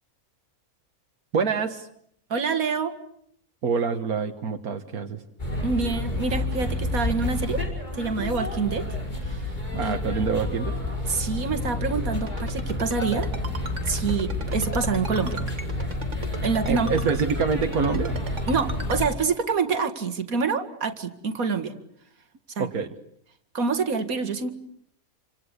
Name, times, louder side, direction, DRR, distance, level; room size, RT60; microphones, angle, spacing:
voice 1, 1.3-1.9 3.6-5.2 9.7-10.7 16.7-18.2 22.6-22.9, right 5 dB, 90° right, 5 dB, 1.9 m, -26 dB
voice 2, 2.3-2.9 5.6-7.6 7.9-8.9 9.2-9.5 9.8-9.9 11.1-13.3 13.9-15.4 16.4-16.9 18.5-21.7 22.6-22.7 23.5-24.5, right 5 dB, 75° right, 9 dB, 2.4 m, -26 dB
sound 1, 5.4-19.1, left 2 dB, 30° left, 5.6 m, -29 dB
Ringtone, 12.3-19.1, right 3 dB, 55° right, 3.3 m, -36 dB
28.5 x 25.5 x 8.3 m, 0.69 s
omnidirectional pair, 1.5 m